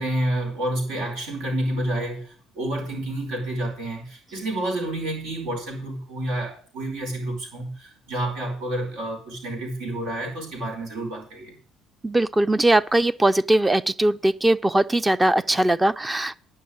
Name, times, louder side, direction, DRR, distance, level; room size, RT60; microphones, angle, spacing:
voice 1, 0.0-11.5, right 1 dB, 80° right, 5.2 m, -29 dB
voice 2, 12.0-16.4, right 1 dB, 15° right, 0.5 m, -20 dB
10.5 x 5.7 x 8.6 m
supercardioid pair, 80°, 0 cm